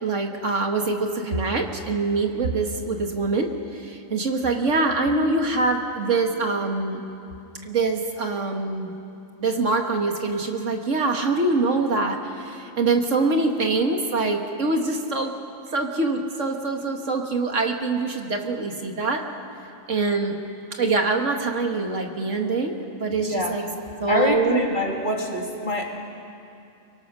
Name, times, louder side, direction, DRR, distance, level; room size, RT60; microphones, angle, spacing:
voice 1, 0.0-7.0 7.6-8.9 9.4-15.3 15.7-19.2 19.9-20.4 20.8-23.6 24.0-24.7, right 3 dB, 60° right, 3 dB, 2.0 m, -24 dB
voice 2, 23.2-23.6 24.1-26.1, left 1 dB, 35° left, 1 dB, 2.4 m, -25 dB
29.5 x 22.5 x 6.3 m, 2.7 s
omnidirectional pair, 1.4 m